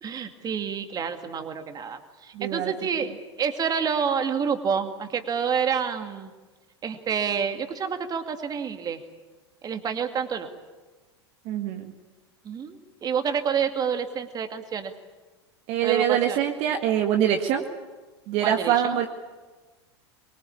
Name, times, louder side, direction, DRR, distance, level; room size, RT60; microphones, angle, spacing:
voice 1, 0.0-6.3 6.8-9.0 9.6-10.5 12.4-14.9 15.8-16.4 18.4-19.0, right 6 dB, 25° right, 7 dB, 2.3 m, -28 dB
voice 2, 2.3-2.7 11.5-11.9 15.7-17.7 18.3-19.1, right 10 dB, 45° right, 4 dB, 1.8 m, -24 dB
24.0 x 23.0 x 8.8 m, 1.2 s
figure-of-eight pair, 85°, 15 cm